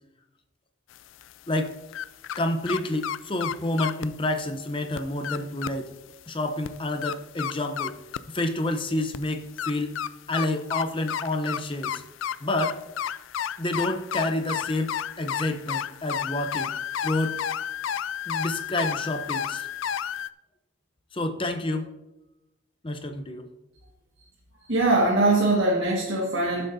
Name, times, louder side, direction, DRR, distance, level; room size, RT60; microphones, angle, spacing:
sound 1, 0.9-2.4 2.7-4.0 4.6-4.7 5.0-5.7 6.1-6.2 6.6-8.3 9.1-20.3, left 9 dB, 70° left, 0.3 m, -31 dB
voice 1, 2.4-5.9 6.3-7.9 8.3-10.0 10.3-12.0 12.4-12.8 13.6-16.7 17.0-17.4 18.3-19.7 21.1-21.9 22.8-23.5, left 1 dB, 25° left, 7 dB, 0.7 m, -29 dB
voice 2, 24.7-26.6, right 2 dB, 70° right, -3 dB, 1.7 m, -22 dB
14.5 x 7.7 x 2.7 m, 0.96 s
head